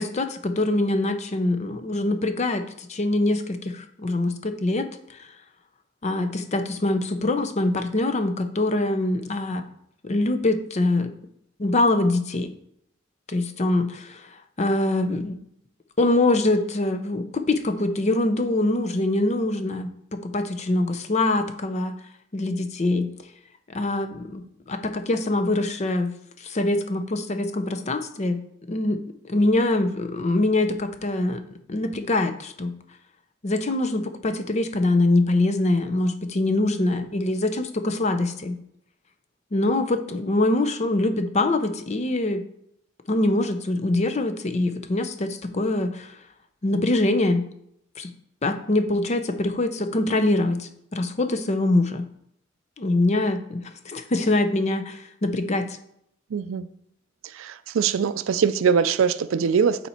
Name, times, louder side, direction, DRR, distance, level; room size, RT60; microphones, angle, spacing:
voice 1, 0.0-4.9 5.2-5.3 6.0-9.6 10.0-11.1 11.6-12.5 13.3-14.3 14.6-15.4 16.0-22.0 22.3-23.1 23.7-24.4 24.7-26.1 26.4-28.4 28.7-31.4 31.7-32.7 33.4-38.6 39.5-42.4 43.1-46.1 46.6-47.4 48.0-48.1 48.4-52.1 52.8-55.8, left 2 dB, 35° left, 0.6 m, -24 dB
voice 2, 56.3-56.7 57.3-59.9, right 6 dB, 80° right, 0.4 m, -22 dB
8.2 x 4.3 x 4.3 m
head